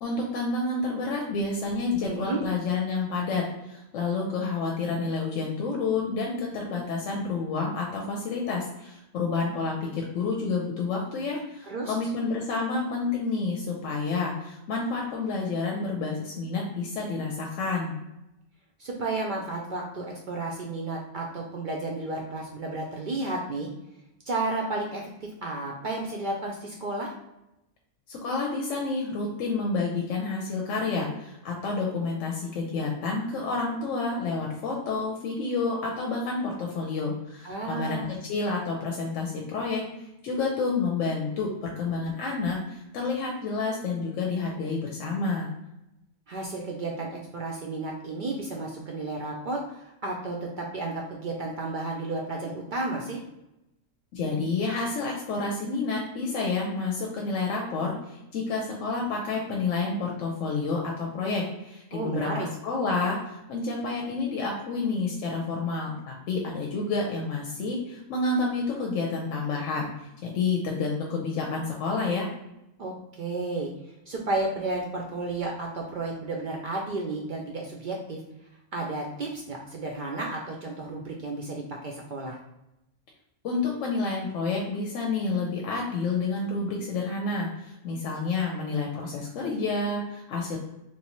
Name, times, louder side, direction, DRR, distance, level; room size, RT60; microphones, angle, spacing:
voice 1, 0.0-17.9 28.1-39.8 40.2-45.5 54.1-72.3 83.4-90.6, left 3 dB, 90° left, -1 dB, 1.0 m, -29 dB
voice 2, 2.0-2.4 11.7-11.9 18.8-23.7 24.3-25.0 25.4-27.1 37.4-38.2 46.3-53.2 61.9-62.5 72.8-73.7 74.1-78.2 78.7-82.4, right 2 dB, 60° right, -1 dB, 0.5 m, -32 dB
3.3 x 2.6 x 2.9 m, 0.90 s
omnidirectional pair, 1.3 m